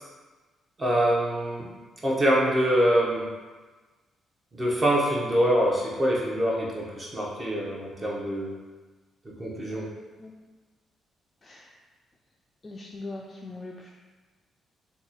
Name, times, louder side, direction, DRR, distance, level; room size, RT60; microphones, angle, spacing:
voice 1, 0.8-1.6 2.0-3.2 4.5-8.5 9.4-9.8, equal, 30° right, -4 dB, 0.8 m, -24 dB
voice 2, 12.6-13.9, left 2 dB, 30° left, -2 dB, 0.3 m, -40 dB
2.9 x 2.3 x 3.9 m, 1.3 s
cardioid pair, 90°, 0 cm